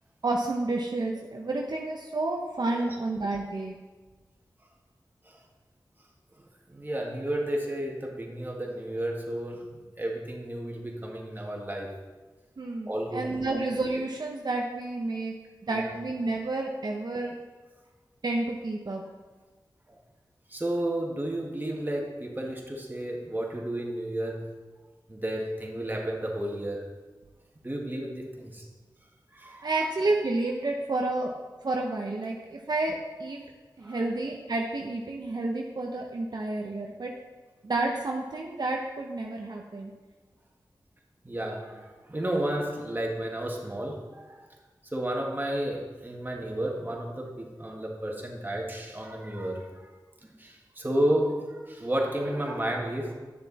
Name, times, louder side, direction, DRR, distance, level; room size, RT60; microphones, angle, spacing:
voice 1, 0.2-3.7 12.6-15.3 15.6-17.3 18.2-19.0 29.6-31.3 31.6-33.4 33.8-37.1 37.6-39.9, right 2 dB, 60° right, 0 dB, 0.9 m, -30 dB
voice 2, 6.4-11.9 12.9-13.5 15.7-15.9 19.9-20.0 20.5-24.4 25.1-26.8 27.6-28.7 29.3-29.7 33.8-34.0 41.2-44.4 44.9-49.9 50.2-53.1, right 1 dB, 25° right, -1 dB, 1.9 m, -32 dB
9.9 x 6.8 x 4.2 m, 1.3 s
cardioid pair, 50°, 8 cm